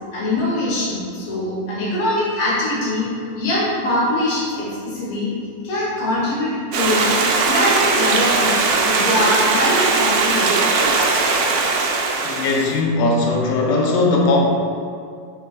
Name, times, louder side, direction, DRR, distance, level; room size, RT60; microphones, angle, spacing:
voice 1, 0.1-3.1 3.3-5.3 5.6-7.2 7.5-8.6 8.9-10.6, left 1 dB, 70° left, -8 dB, 1.6 m, -22 dB
Stream, 6.7-12.8, right 4 dB, 85° right, 2.2 m, -19 dB
voice 2, 12.2-14.4, left 2 dB, 85° left, 0 dB, 2.3 m, -18 dB
4.7 x 4.0 x 2.3 m, 2.3 s
omnidirectional pair, 3.8 m